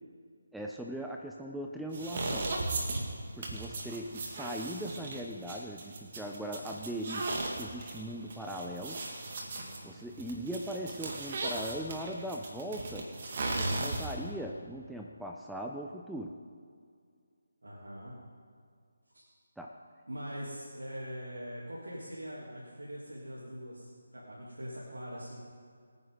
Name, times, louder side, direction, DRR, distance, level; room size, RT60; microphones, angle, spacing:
voice 1, 0.5-2.6 3.4-7.3 7.6-9.1 9.8-13.1 13.6-16.4 19.6-19.7, right 1 dB, ahead, 0 dB, 0.5 m, -39 dB
sound 1, 1.9-14.3, right 2 dB, 45° right, 2.2 m, -37 dB
voice 2, 17.6-18.1 19.1-19.3 20.1-25.4, equal, 85° right, -6 dB, 3.2 m, -42 dB
24.5 x 9.7 x 3.9 m, 2.1 s
figure-of-eight pair, 155°, 0 cm